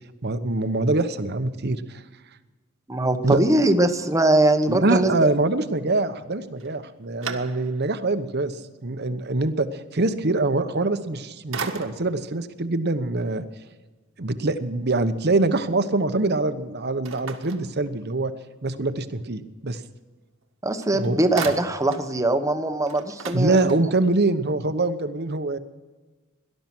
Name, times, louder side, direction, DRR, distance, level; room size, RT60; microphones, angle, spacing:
voice 1, 0.2-2.0 3.2-3.4 4.7-13.4 14.2-18.3 18.6-19.8 20.9-21.2 23.3-25.6, right 2 dB, 50° right, 11 dB, 1.0 m, -24 dB
voice 2, 2.9-5.3 20.6-23.8, right 2 dB, 15° right, 8 dB, 1.0 m, -21 dB
sound 1, 6.6-8.0 8.5-8.6 10.9-11.2 11.5-12.3 17.0-18.3 20.4-20.5 20.8-22.1 22.5-22.6 22.8-24.1, right 5 dB, 70° right, 1.6 m, -36 dB
18.0 x 12.0 x 6.1 m, 1.3 s
head